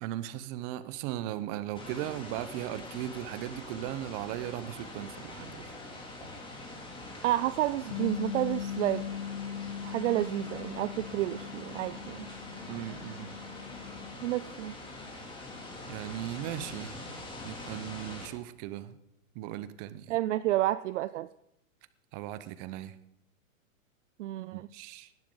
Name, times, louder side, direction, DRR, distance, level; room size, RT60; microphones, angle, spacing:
voice 1, 0.0-5.7 12.7-13.3 15.9-17.0 17.4-19.0 19.3-20.2 22.1-22.9 24.5-25.1, right 13 dB, 35° right, 14 dB, 0.9 m, -37 dB
sound 1, 1.7-18.3, left 2 dB, 10° left, 2.7 m, -44 dB
voice 2, 7.2-9.0 9.8-12.3 14.2-14.7 20.1-21.3 24.2-24.7, right 15 dB, 60° right, 15 dB, 0.5 m, -30 dB
Bass guitar, 7.9-14.2, left 9 dB, 70° left, 1.0 m, -40 dB
19.0 x 12.0 x 3.9 m, 0.80 s
hypercardioid pair, 130°, 41 cm